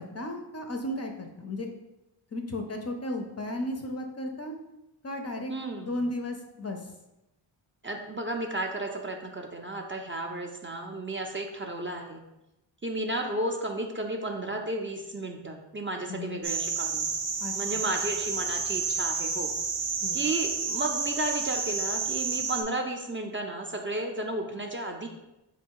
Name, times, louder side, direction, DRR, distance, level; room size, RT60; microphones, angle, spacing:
voice 1, 0.0-1.7 2.3-4.6 5.0-5.5 5.8-6.9 16.1-16.4 17.4-17.9 20.0-20.3, left 1 dB, 35° left, 4 dB, 0.4 m, -34 dB
voice 2, 5.5-6.0 7.8-12.2 12.8-17.1 17.5-19.5 20.1-25.1, right 1 dB, 25° right, 2 dB, 0.4 m, -33 dB
sound 1, 16.4-22.6, right 5 dB, 65° right, 0.6 m, -30 dB
3.7 x 2.3 x 4.5 m, 0.93 s
cardioid pair, 60°, 49 cm